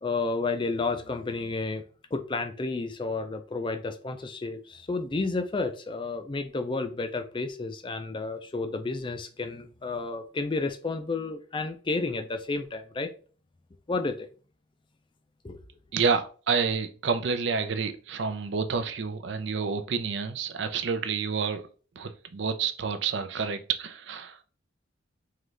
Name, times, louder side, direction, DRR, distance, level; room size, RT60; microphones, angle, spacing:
voice 1, 0.0-1.8 2.1-13.1 13.9-14.3 15.4-15.6, left 3 dB, 25° left, 0.4 m, -31 dB
voice 2, 15.9-21.7 22.0-24.4, right 5 dB, 60° right, 0.5 m, -29 dB
3.7 x 3.1 x 3.3 m
head